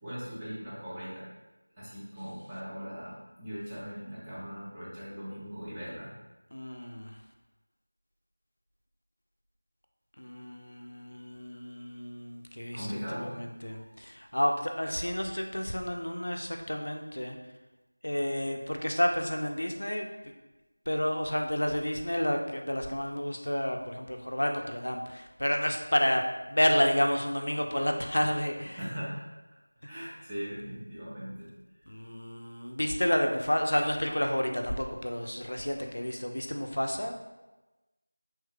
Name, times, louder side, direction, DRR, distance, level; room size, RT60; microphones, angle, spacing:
voice 1, 0.0-1.3 1.8-6.1 12.7-13.3 13.7-14.0 28.7-29.2 29.9-31.5, equal, 5° right, -12 dB, 0.4 m, -39 dB
voice 2, 6.5-7.1 10.2-17.3 18.0-20.1 20.9-26.2 26.5-28.8 31.9-37.1, equal, 75° left, 3 dB, 0.4 m, -30 dB
3.0 x 2.2 x 3.3 m, 1.1 s
figure-of-eight pair, 175°, 0 cm